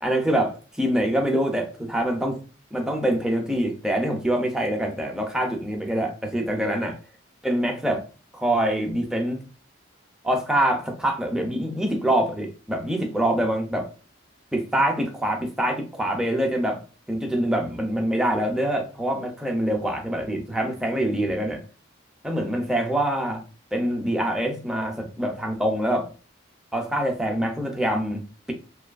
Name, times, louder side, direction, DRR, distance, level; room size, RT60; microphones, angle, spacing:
voice 1, 0.0-2.4 2.7-7.0 7.4-8.1 8.3-9.4 10.2-13.9 14.5-16.8 17.1-21.6 22.2-23.4 23.7-26.1 26.7-28.2, right 1 dB, 5° right, 1 dB, 0.4 m, -25 dB
2.6 x 2.3 x 2.3 m, 0.35 s
head